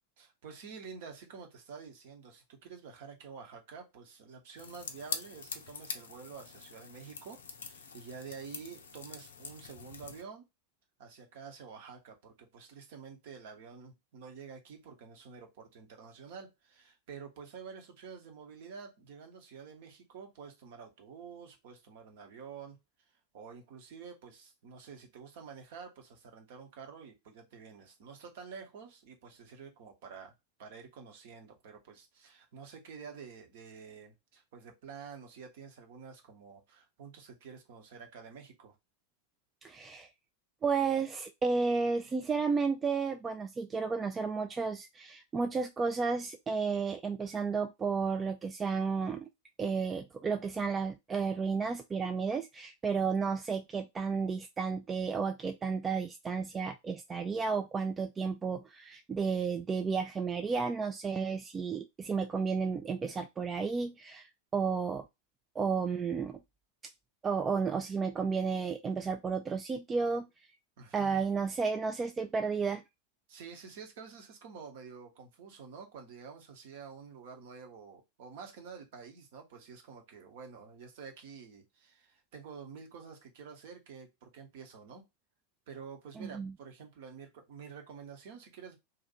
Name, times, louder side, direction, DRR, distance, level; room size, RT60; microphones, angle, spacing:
voice 1, 0.2-10.4 11.0-22.8 23.3-30.3 30.6-38.8 70.8-71.2 73.3-85.1 85.7-88.8, right 6 dB, 50° right, 0.9 m, -49 dB
sound 1, 4.6-10.2, left 5 dB, 65° left, 0.5 m, -44 dB
voice 2, 39.6-40.1 40.6-49.3 49.6-64.3 64.5-65.0 65.6-66.4 67.2-70.3 70.9-72.8 86.2-86.5, right 5 dB, 20° right, 0.3 m, -32 dB
2.7 x 2.5 x 4.1 m
figure-of-eight pair, 90°, 0 cm